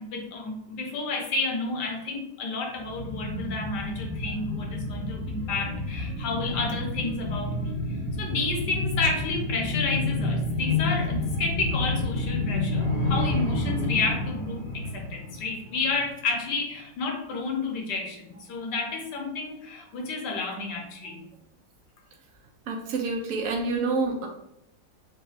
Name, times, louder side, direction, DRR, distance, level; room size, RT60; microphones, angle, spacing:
voice 1, 0.0-7.8 8.2-21.2, left 3 dB, 70° left, 1 dB, 1.3 m, -31 dB
sound 1, 2.8-16.0 16.3-16.4, left 2 dB, 45° left, 0.6 m, -29 dB
voice 2, 22.7-24.3, right 3 dB, 85° right, 1 dB, 0.7 m, -28 dB
3.9 x 2.2 x 4.1 m, 0.80 s
omnidirectional pair, 2.0 m